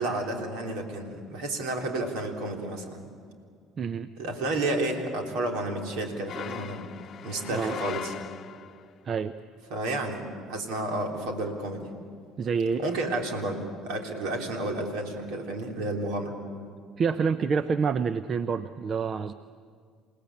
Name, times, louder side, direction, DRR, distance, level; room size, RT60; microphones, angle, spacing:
voice 1, 0.0-3.0 4.2-6.9 7.2-8.1 9.7-11.9 12.8-16.3, right 2 dB, 65° right, 2 dB, 3.7 m, -31 dB
voice 2, 3.8-4.1 7.5-7.8 9.0-9.3 12.4-12.8 17.0-19.3, right 5 dB, 45° right, 13 dB, 0.7 m, -27 dB
sound 1, 6.3-8.9, left 8 dB, 45° left, 0.9 m, -39 dB
29.0 x 18.0 x 8.6 m, 2.1 s
hypercardioid pair, 60°, 0 cm